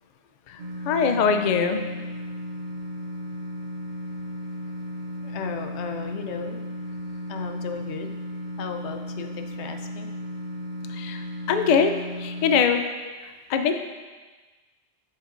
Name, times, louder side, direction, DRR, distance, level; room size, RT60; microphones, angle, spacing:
voice 1, 0.5-1.8 10.9-11.9 12.2-12.8 13.5-13.7, left 6 dB, 55° left, 6 dB, 0.5 m, -22 dB
sound 1, 0.6-12.6, left 1 dB, 75° right, 1.0 m, -35 dB
voice 2, 5.2-6.6 7.3-8.1 8.6-10.1, left 6 dB, 85° left, 5 dB, 0.9 m, -35 dB
8.8 x 5.8 x 2.5 m, 1.3 s
omnidirectional pair, 1.1 m